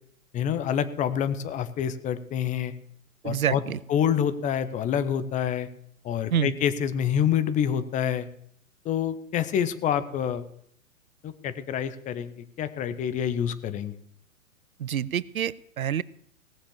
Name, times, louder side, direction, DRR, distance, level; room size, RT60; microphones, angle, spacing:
voice 1, 0.3-2.7 3.2-3.6 3.9-5.7 6.0-8.3 8.8-10.4 11.2-13.9, left 9 dB, 20° left, 13 dB, 0.8 m, -27 dB
voice 2, 3.2-3.8 6.3-6.5 14.8-16.0, right 9 dB, 90° right, 21 dB, 0.6 m, -27 dB
17.5 x 7.2 x 7.1 m, 0.67 s
hypercardioid pair, 120°, 41 cm